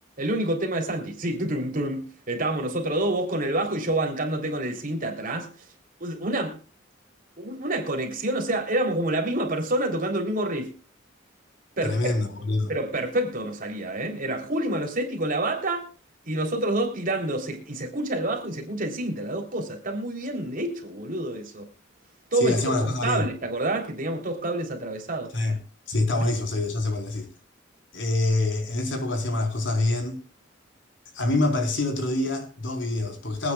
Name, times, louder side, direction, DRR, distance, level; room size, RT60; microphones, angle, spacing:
voice 1, 0.2-5.5 6.0-6.6 7.4-10.7 11.8-12.0 12.7-15.9 16.2-21.7 22.3-25.3, right 1 dB, 45° right, 3.5 m, -28 dB
voice 2, 11.8-12.7 22.4-23.2 25.3-25.6 25.9-27.3 27.9-30.2 31.1-33.5, left 2 dB, 65° left, 4.3 m, -25 dB
25.5 x 9.7 x 2.4 m
head